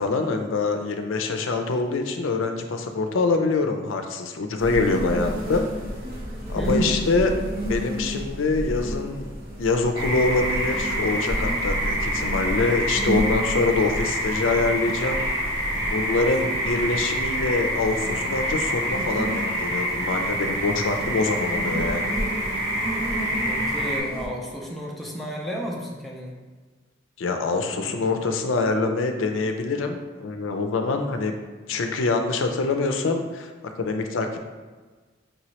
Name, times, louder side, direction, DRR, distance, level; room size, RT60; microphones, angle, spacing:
voice 1, 0.0-5.6 6.5-9.3 9.6-15.3 15.9-22.1 27.2-31.3 31.7-33.5 33.8-34.4, left 3 dB, 80° left, 5 dB, 0.5 m, -25 dB
sound 1, 4.6-24.3, equal, 45° right, 1.2 m, -32 dB
voice 2, 6.5-7.0 23.3-26.4, equal, ahead, -2 dB, 0.5 m, -33 dB
sound 2, 9.9-24.0, right 1 dB, 65° right, 1.4 m, -27 dB
5.2 x 3.1 x 2.9 m, 1.4 s
head